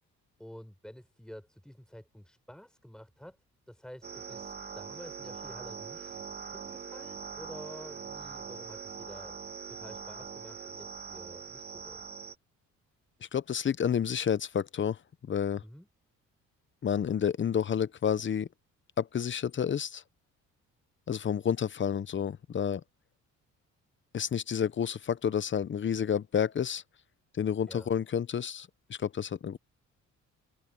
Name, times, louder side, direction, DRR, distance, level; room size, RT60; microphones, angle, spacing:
voice 1, 0.4-3.4 3.7-6.2 6.5-9.4 9.7-12.1 15.6-15.9 27.7-27.9, equal, ahead, 7.0 m, -50 dB
sound 1, 4.0-12.4, right 6 dB, 35° right, 1.8 m, -42 dB
voice 2, 13.3-15.0 15.3-15.6 16.8-18.5 19.0-20.0 21.1-22.8 24.1-26.8 27.3-29.6, left 8 dB, 40° left, 0.8 m, -30 dB
cardioid pair, 90°, 30 cm